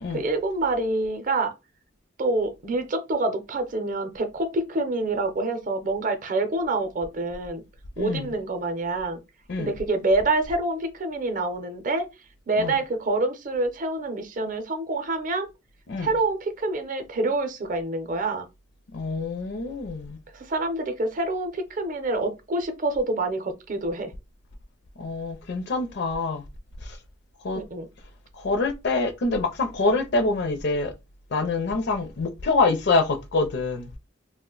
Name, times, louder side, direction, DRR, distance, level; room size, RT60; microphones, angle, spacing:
voice 1, 0.1-1.5 2.2-7.6 8.0-9.2 9.6-12.0 12.5-15.5 16.0-18.4 20.3-24.1 27.5-27.9, right 2 dB, 40° right, 0.6 m, -26 dB
voice 2, 8.0-8.3 9.5-9.7 12.6-12.8 15.9-16.1 18.9-20.2 25.0-26.4 26.8-27.0 27.4-27.6 28.3-30.9 31.3-33.9, left 3 dB, 55° left, 0.5 m, -25 dB
2.4 x 2.1 x 3.8 m
head